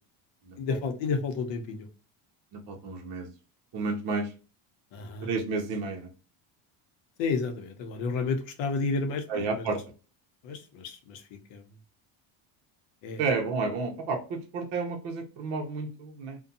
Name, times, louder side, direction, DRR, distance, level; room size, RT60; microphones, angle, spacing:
voice 1, 0.6-1.9 4.9-5.3 7.2-9.7 10.4-11.2 11.5-11.6 13.0-13.2, left 4 dB, 65° left, 6 dB, 0.8 m, -31 dB
voice 2, 2.5-3.3 3.7-4.3 5.2-6.1 9.3-9.8 13.2-16.4, right 4 dB, 60° right, 2 dB, 0.9 m, -31 dB
2.6 x 2.2 x 2.6 m, 0.34 s
cardioid pair, 150°, 49 cm